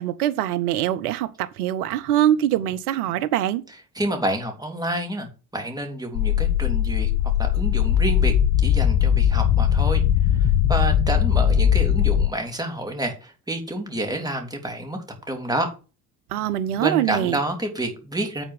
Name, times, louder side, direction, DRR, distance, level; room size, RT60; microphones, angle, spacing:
voice 1, 0.0-3.6 16.3-17.4, right 12 dB, 75° right, 0.9 m, -23 dB
voice 2, 3.9-7.1 7.4-8.3 8.6-10.0 10.3-15.7 16.8-18.4, right 1 dB, 10° right, 3.4 m, -28 dB
sound 1, 6.1-12.3, left 9 dB, 45° left, 0.9 m, -19 dB
9.0 x 4.4 x 7.4 m
figure-of-eight pair, 55°, 45 cm